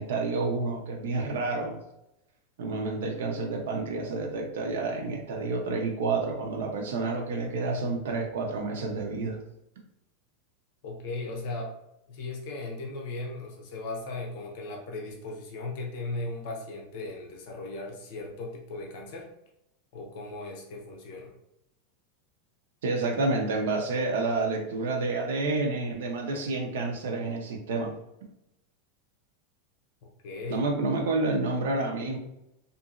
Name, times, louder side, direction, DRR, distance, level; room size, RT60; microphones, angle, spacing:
voice 1, 0.0-1.8 2.6-9.4 22.8-27.9 30.5-32.2, right 3 dB, 85° right, 1 dB, 0.6 m, -29 dB
voice 2, 10.8-11.8 12.1-19.3 19.9-21.3 30.2-30.7, left 2 dB, 55° left, 0 dB, 0.8 m, -37 dB
2.8 x 2.5 x 2.4 m, 0.83 s
supercardioid pair, 160°, 0 cm